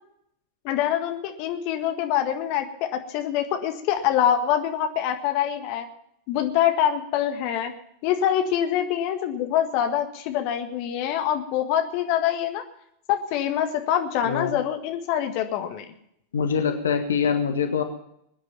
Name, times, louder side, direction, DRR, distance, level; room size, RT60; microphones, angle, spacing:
voice 1, 0.6-5.9 6.3-7.7 8.0-12.6 13.1-15.9, left 10 dB, 45° left, 6 dB, 1.7 m, -25 dB
voice 2, 14.2-14.5 16.3-17.8, left 6 dB, 65° left, 6 dB, 1.6 m, -24 dB
21.5 x 10.0 x 5.8 m, 0.74 s
figure-of-eight pair, 90°, 0 cm